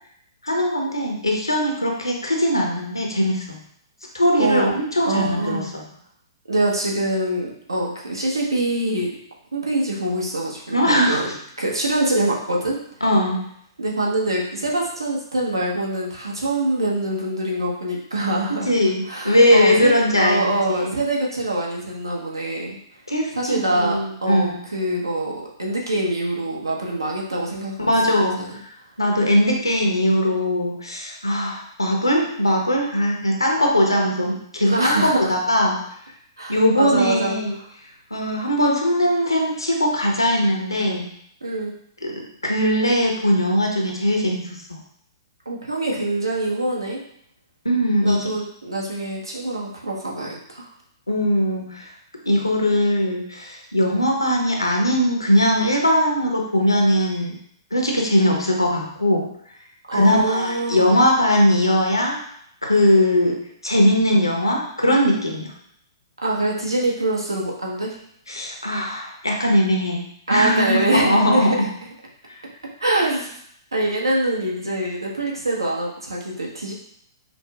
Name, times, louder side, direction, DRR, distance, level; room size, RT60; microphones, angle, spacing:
voice 1, 0.4-3.4 4.1-5.8 10.7-11.3 13.0-13.4 18.6-20.4 20.7-20.9 23.1-24.6 27.8-28.6 29.0-35.8 36.5-37.5 38.1-41.1 42.0-44.8 47.6-48.3 51.1-51.9 52.3-57.3 57.7-59.3 59.9-62.2 62.6-65.5 68.3-71.7 72.3-72.4, equal, 90° left, 0 dB, 0.8 m, -20 dB
voice 2, 4.4-4.7 5.0-5.7 6.5-9.1 9.5-11.3 11.6-12.8 13.8-18.7 19.1-22.8 23.3-25.3 25.6-27.9 28.4-28.5 34.6-35.3 36.4-37.4 41.4-41.7 45.5-47.0 48.0-50.7 59.9-60.9 66.2-67.9 70.3-71.6 72.8-73.3 73.7-76.7, right 1 dB, 80° right, -2 dB, 1.0 m, -24 dB
5.3 x 2.1 x 2.3 m, 0.68 s
figure-of-eight pair, 115°, 2 cm